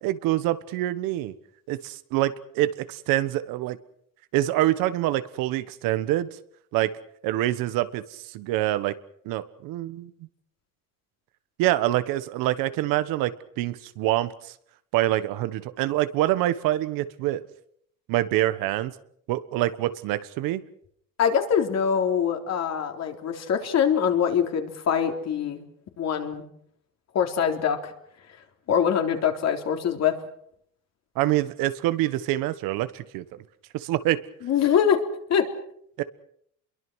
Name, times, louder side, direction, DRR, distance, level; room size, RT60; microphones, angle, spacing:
voice 1, 0.0-1.3 1.7-3.8 4.3-6.3 6.7-6.9 7.2-9.0 9.2-10.1 11.6-14.5 14.9-17.4 18.1-18.9 19.3-20.6 31.1-33.2 33.7-34.2 36.0-36.1, right 15 dB, 85° right, 13 dB, 1.4 m, -25 dB
voice 2, 21.2-25.6 26.0-26.4 27.1-27.8 28.7-30.1 34.4-35.0 35.3-35.5, left 8 dB, 50° left, 4 dB, 3.7 m, -23 dB
27.0 x 22.5 x 6.3 m, 0.70 s
cardioid pair, 120°, 33 cm